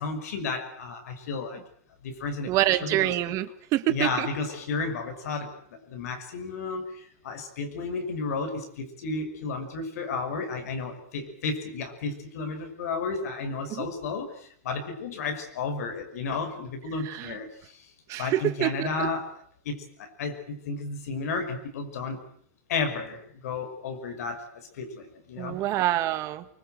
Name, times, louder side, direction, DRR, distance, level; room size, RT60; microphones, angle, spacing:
voice 1, 0.0-1.6 2.0-3.1 3.9-17.8 18.2-19.3 19.6-22.2 22.7-25.6, left 4 dB, 75° left, 6 dB, 5.9 m, -33 dB
voice 2, 2.5-4.3 13.7-13.9 17.0-17.3 18.1-19.1 25.4-26.4, right 14 dB, 40° right, 12 dB, 1.5 m, -26 dB
24.0 x 21.5 x 7.9 m, 0.62 s
supercardioid pair, 135°, 8 cm